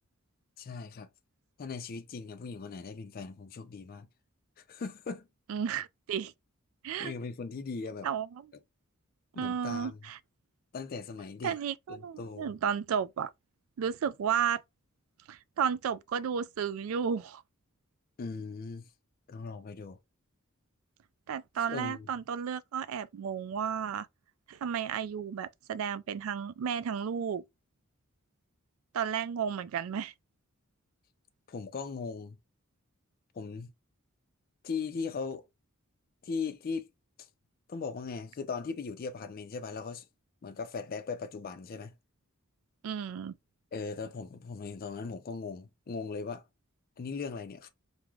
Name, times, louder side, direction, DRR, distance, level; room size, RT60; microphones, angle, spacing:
voice 1, 0.6-1.1 1.6-4.1 4.7-5.3 7.0-8.1 9.3-10.0 10.7-11.6 11.9-12.5 18.2-18.9 19.3-20.0 21.7-22.1 31.5-32.4 33.3-33.7 34.6-35.4 36.2-36.9 37.2-37.3 37.7-40.1 40.4-41.9 43.7-46.4 47.0-47.7, left 4 dB, 45° left, 0.4 m, -38 dB
voice 2, 5.5-6.3 6.8-7.1 8.0-8.5 9.4-10.2 11.4-13.3 13.8-14.6 15.3-17.4 21.3-24.1 24.5-27.4 28.9-30.1 42.8-43.4, right 7 dB, 70° right, 0.3 m, -33 dB
3.6 x 2.0 x 3.0 m
head